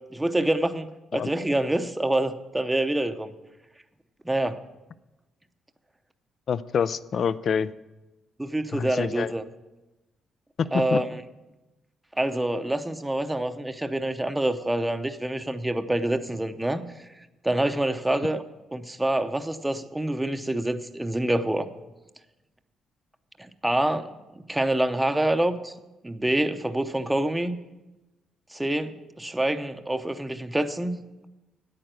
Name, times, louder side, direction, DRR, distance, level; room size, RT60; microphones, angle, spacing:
voice 1, 0.1-3.3 4.2-4.6 8.4-9.4 10.7-11.2 12.2-16.8 17.4-18.4 18.7-21.7 23.4-25.7 26.0-27.6 28.5-31.0, right 1 dB, 10° right, 8 dB, 0.7 m, -26 dB
voice 2, 6.5-7.7 8.7-9.3 10.6-11.0, left 7 dB, 55° left, 17 dB, 0.4 m, -26 dB
9.6 x 8.9 x 6.5 m, 1.0 s
cardioid pair, 90°, 0 cm